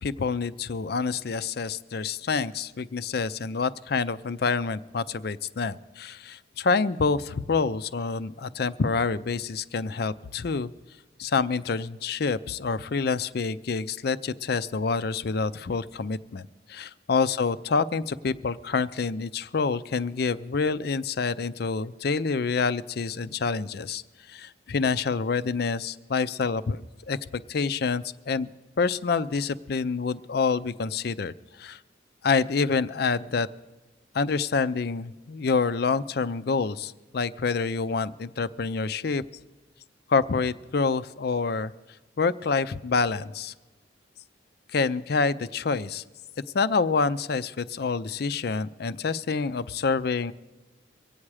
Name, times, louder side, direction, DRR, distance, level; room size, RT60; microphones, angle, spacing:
voice 1, 0.0-10.7 11.2-24.0 24.3-28.5 28.8-31.8 32.2-33.5 34.1-39.2 40.1-41.7 42.2-43.5 44.7-46.0 46.5-50.3, left 4 dB, 55° left, 15 dB, 0.5 m, -27 dB
24.0 x 8.7 x 4.8 m, 1.2 s
head